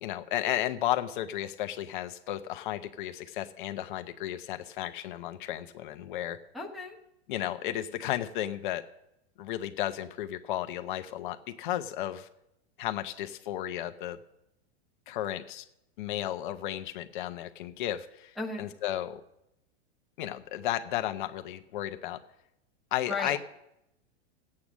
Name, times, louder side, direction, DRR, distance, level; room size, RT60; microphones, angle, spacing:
voice 1, 0.0-6.4 7.3-8.8 9.4-12.3 12.8-14.2 15.1-15.6 16.0-18.3 18.6-19.2 20.2-22.2 22.9-23.4, left 13 dB, 50° left, 8 dB, 0.8 m, -33 dB
voice 2, 6.5-7.0 18.4-18.7 23.1-23.4, left 3 dB, ahead, -3 dB, 1.0 m, -34 dB
15.0 x 8.6 x 6.2 m, 0.85 s
supercardioid pair, 170°, 32 cm